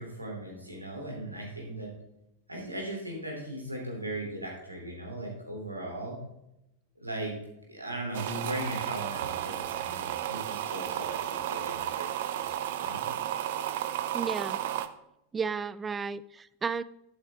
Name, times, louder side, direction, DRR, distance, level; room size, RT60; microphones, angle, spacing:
voice 1, 0.0-1.9 2.5-6.2 7.0-7.4 7.7-13.0 13.6-13.7, right 1 dB, 85° right, 0 dB, 3.0 m, -38 dB
sound 1, 8.1-14.9, right 11 dB, 55° right, 0.6 m, -33 dB
voice 2, 14.1-14.6 15.3-16.8, right 5 dB, 15° right, 18 dB, 0.4 m, -33 dB
11.5 x 8.5 x 3.6 m, 0.82 s
figure-of-eight pair, 90°, 0 cm